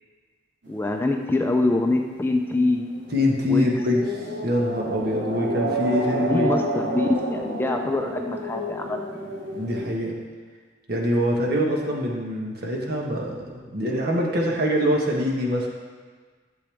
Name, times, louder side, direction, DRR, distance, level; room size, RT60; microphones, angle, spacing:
sound 1, 0.6-9.9, right 1 dB, 85° right, 2.2 m, -30 dB
voice 1, 0.7-2.8 3.5-3.7 6.2-9.2, left 2 dB, 10° left, 3 dB, 0.4 m, -24 dB
voice 2, 3.1-4.0 4.4-6.5 9.5-10.2 10.9-15.7, left 1 dB, 55° right, -1 dB, 1.4 m, -24 dB
12.0 x 7.0 x 3.5 m, 1.5 s
head